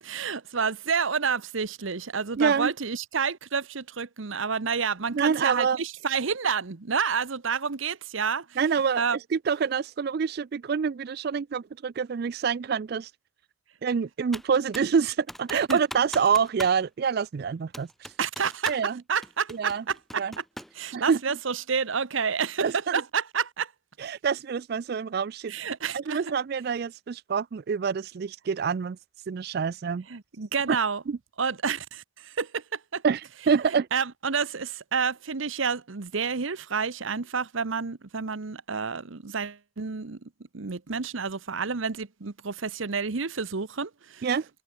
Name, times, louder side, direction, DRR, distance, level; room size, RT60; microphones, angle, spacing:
voice 1, 0.0-8.6 9.0-9.2 15.5-15.8 18.2-20.4 20.8-23.7 25.5-26.2 30.1-31.0 31.4-33.0 33.9-40.2 40.5-44.3, right 5 dB, 75° right, 1.0 m, -29 dB
voice 2, 2.4-2.7 5.1-5.8 8.6-13.1 13.8-18.1 18.7-19.0 19.5-19.8 20.2-20.3 20.9-21.2 22.6-23.0 24.0-25.5 25.9-29.0 29.3-30.0 30.7-30.8 31.1-31.2 33.0-33.9 44.2-44.5, right 6 dB, 50° right, 0.3 m, -26 dB
Computer keyboard, 14.3-15.0 15.3-16.8 17.1-17.2 17.7-18.9 19.2-20.8, equal, ahead, 0.9 m, -40 dB
head